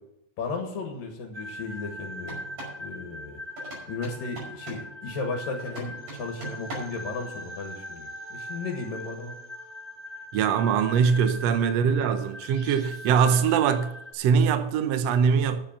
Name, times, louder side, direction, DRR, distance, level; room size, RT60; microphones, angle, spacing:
voice 1, 0.4-2.4 2.8-3.4 3.9-9.3 11.6-11.9, left 4 dB, 75° left, 3.1 m, -35 dB
sound 1, 1.3-14.1, equal, 20° right, 2.9 m, -41 dB
sound 2, 2.2-2.8 3.6-4.9 5.6-7.0, right 2 dB, 60° right, 7.2 m, -40 dB
voice 2, 10.3-15.6, right 6 dB, 85° right, 1.4 m, -22 dB
10.0 x 7.6 x 7.3 m
omnidirectional pair, 4.0 m